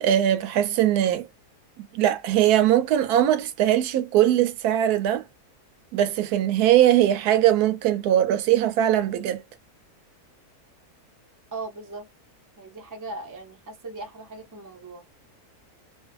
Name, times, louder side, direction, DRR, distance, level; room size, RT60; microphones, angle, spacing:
voice 1, 0.0-1.3 1.8-5.2 5.9-9.4, right 12 dB, 85° right, 1.1 m, -21 dB
voice 2, 11.5-12.1 12.6-15.0, right 3 dB, 25° right, 0.4 m, -38 dB
2.6 x 2.5 x 2.3 m
omnidirectional pair, 1.6 m